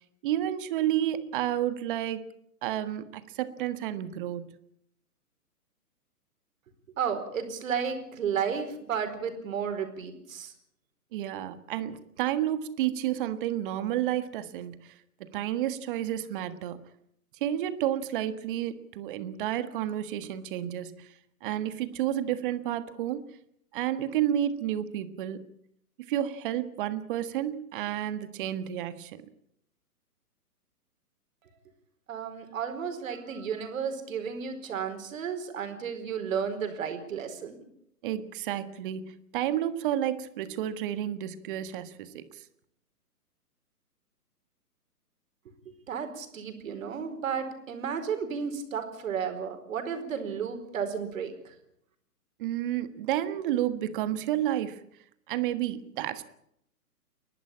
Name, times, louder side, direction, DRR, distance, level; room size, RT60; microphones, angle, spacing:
voice 1, 0.2-2.3 2.6-4.5 11.1-14.9 15.2-16.8 17.4-21.1 21.4-23.2 23.7-25.5 26.1-29.2 38.0-42.4 52.4-54.8 55.3-56.2, right 12 dB, 35° right, 12 dB, 1.6 m, -31 dB
voice 2, 7.0-10.5 31.4-31.5 32.1-37.7 45.6-51.5, right 7 dB, 55° right, 6 dB, 4.7 m, -33 dB
30.0 x 12.0 x 8.8 m, 0.75 s
hypercardioid pair, 140°, 46 cm